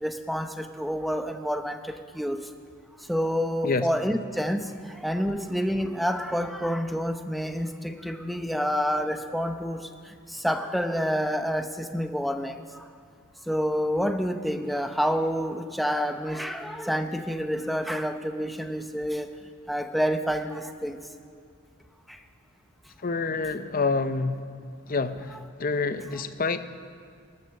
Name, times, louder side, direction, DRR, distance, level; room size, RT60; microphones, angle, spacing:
voice 1, 0.0-1.8 2.1-2.4 3.1-4.6 5.0-9.9 10.4-12.5 13.5-19.3 19.7-21.0, equal, ahead, 7 dB, 0.6 m, -28 dB
voice 2, 23.0-24.5 24.9-26.6, left 4 dB, 40° left, 11 dB, 0.6 m, -27 dB
19.0 x 9.6 x 6.7 m, 2.3 s
head